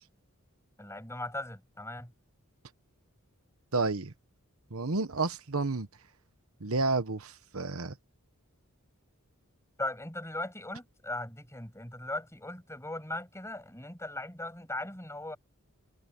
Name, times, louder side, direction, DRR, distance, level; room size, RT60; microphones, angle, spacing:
voice 1, 0.8-2.1 9.8-15.4, left 1 dB, 15° left, 7.4 m, -38 dB
voice 2, 3.7-4.1 4.7-5.9 6.6-7.9, right 3 dB, 70° right, 1.2 m, -30 dB
head